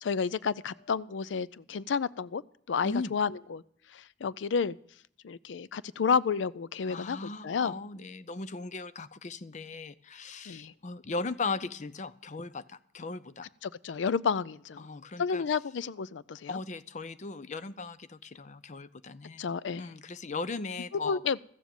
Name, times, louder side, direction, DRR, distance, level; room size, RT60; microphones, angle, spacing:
voice 1, 0.0-2.4 2.7-3.6 3.9-4.8 5.2-7.7 10.5-10.7 13.6-14.9 15.2-16.6 19.4-19.9 21.0-21.4, left 6 dB, 90° left, 19 dB, 0.4 m, -31 dB
voice 2, 2.8-3.1 6.8-13.5 14.8-15.5 16.5-19.5 19.8-21.2, left 3 dB, 40° left, 14 dB, 0.6 m, -38 dB
14.0 x 7.2 x 9.0 m, 0.63 s
head